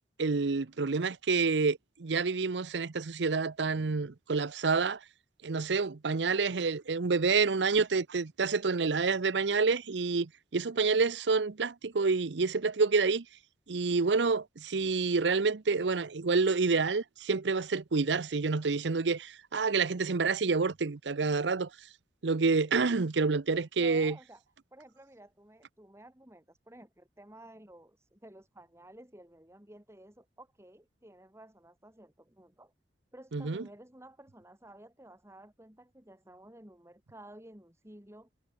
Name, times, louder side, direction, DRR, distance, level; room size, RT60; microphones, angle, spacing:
voice 1, 0.2-5.0 5.4-13.2 13.7-21.7 22.2-24.2 33.3-33.6, right 4 dB, 85° right, 0.7 m, -28 dB
voice 2, 23.8-24.4 24.7-32.7 33.1-38.3, right 1 dB, 15° right, 3.4 m, -53 dB
head